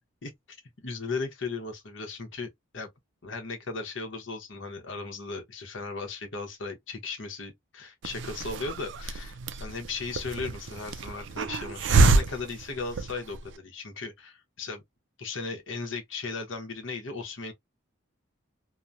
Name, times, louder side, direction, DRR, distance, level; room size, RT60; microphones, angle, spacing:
voice 1, 0.2-2.9 3.2-14.8 15.2-17.5, left 4 dB, 70° left, 0.9 m, -36 dB
Hiss, 8.0-13.5, right 3 dB, 65° right, 0.4 m, -27 dB
2.9 x 2.1 x 2.4 m
head